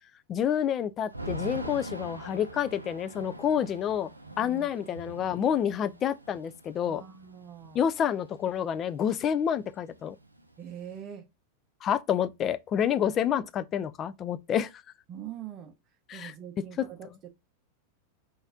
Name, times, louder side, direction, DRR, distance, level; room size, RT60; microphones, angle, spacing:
voice 1, 0.3-4.1 4.4-7.0 7.7-10.2 11.8-14.7 16.1-16.3, left 9 dB, 30° left, 0.3 m, -28 dB
Thunder / Rain, 1.1-9.0 9.3-9.4 9.6-11.0, right 2 dB, 85° right, 0.4 m, -43 dB
voice 2, 4.3-5.0 5.8-6.0 6.8-7.9 10.6-11.3 15.1-15.7 16.1-17.3, right 9 dB, 30° right, 0.7 m, -44 dB
4.0 x 2.6 x 3.7 m
figure-of-eight pair, 90°, 0 cm